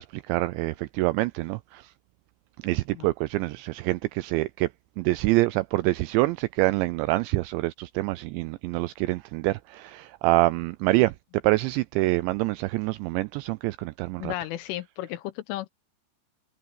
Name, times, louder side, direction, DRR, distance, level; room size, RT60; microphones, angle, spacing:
voice 1, 0.0-1.9 2.6-4.7 5.0-11.1 11.4-14.3, right 19 dB, 85° right, 2.7 m, -26 dB
voice 2, 14.2-15.7, left 15 dB, 85° left, 3.6 m, -34 dB
omnidirectional pair, 5.5 m